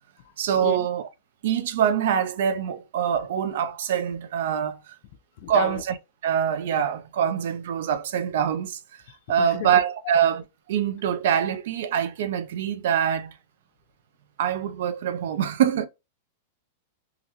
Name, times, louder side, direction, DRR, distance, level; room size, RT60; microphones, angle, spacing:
voice 1, 0.4-1.1 1.4-5.0 5.5-6.0 6.2-8.8 9.3-10.4 10.7-13.3 14.4-15.9, right 8 dB, 65° right, 0.5 m, -24 dB
voice 2, 5.4-5.8 9.4-9.7, left 10 dB, 45° left, 0.4 m, -33 dB
3.8 x 2.2 x 2.9 m
supercardioid pair, 170°, 0 cm